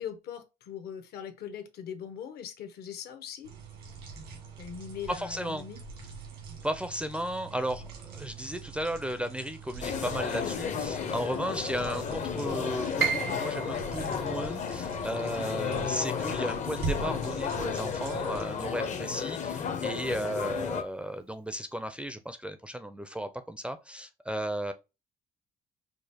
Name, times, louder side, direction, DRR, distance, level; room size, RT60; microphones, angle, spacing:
voice 1, 0.0-3.5 4.6-5.8 19.6-19.8, left 8 dB, 70° left, 0.8 m, -41 dB
sound 1, 3.4-18.4, right 5 dB, 90° right, 1.7 m, -42 dB
voice 2, 5.1-5.6 6.6-24.7, equal, 5° right, 0.4 m, -35 dB
sound 2, 9.8-20.8, left 7 dB, 45° left, 0.6 m, -33 dB
Piano, 13.0-18.9 19.3-20.4 20.8-20.9 21.6-22.0, right 6 dB, 70° right, 0.7 m, -37 dB
4.9 x 2.0 x 2.7 m
cardioid pair, 110°, 17 cm